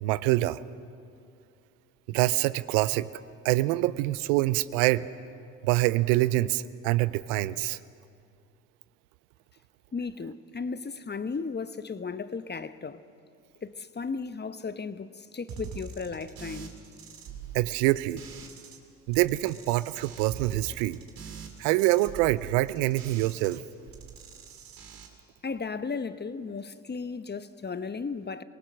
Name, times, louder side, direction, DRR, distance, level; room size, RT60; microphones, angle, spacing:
voice 1, 0.0-0.6 2.1-3.1 3.4-5.0 5.6-7.8 17.5-18.2 19.1-21.0 21.6-23.6, right 18 dB, 80° right, 0.6 m, -25 dB
voice 2, 9.9-13.0 13.6-16.8 25.4-28.4, left 4 dB, 25° left, 1.0 m, -35 dB
sound 1, 15.5-18.8 19.1-23.6 23.9-25.1, right 6 dB, 60° right, 2.6 m, -44 dB
26.5 x 18.5 x 6.3 m
hypercardioid pair, 50°, 41 cm